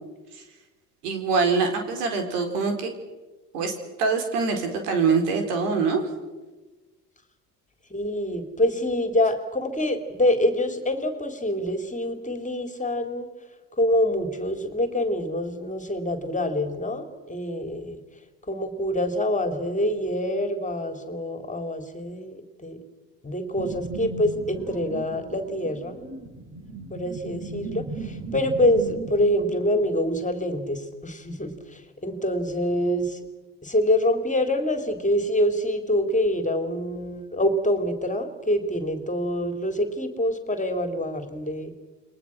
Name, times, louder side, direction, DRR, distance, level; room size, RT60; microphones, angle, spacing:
voice 1, 1.0-2.9 3.5-3.7 4.0-6.0, right 4 dB, 70° right, 5 dB, 4.4 m, -24 dB
voice 2, 7.9-13.3 13.8-18.0 18.5-22.8 23.2-26.0 26.9-33.2 33.6-41.7, left 1 dB, 15° left, 7 dB, 3.7 m, -26 dB
sound 1, 23.5-30.3, right 3 dB, 30° right, 5.4 m, -37 dB
29.5 x 22.5 x 6.2 m, 1.2 s
hypercardioid pair, 65°, 48 cm